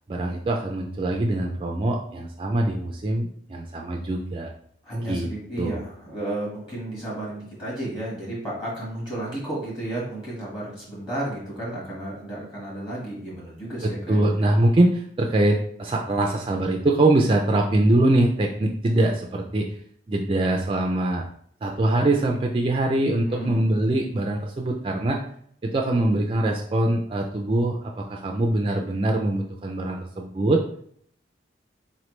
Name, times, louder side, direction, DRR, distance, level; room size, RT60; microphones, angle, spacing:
voice 1, 0.1-4.5 5.1-5.3 5.6-5.8 13.8-19.7 20.1-21.2 21.6-25.2 25.6-30.6, right 1 dB, 25° right, 1 dB, 0.3 m, -23 dB
voice 2, 4.8-14.2 23.3-23.7, right 1 dB, 25° left, -5 dB, 1.3 m, -32 dB
4.3 x 3.2 x 3.0 m, 0.64 s
head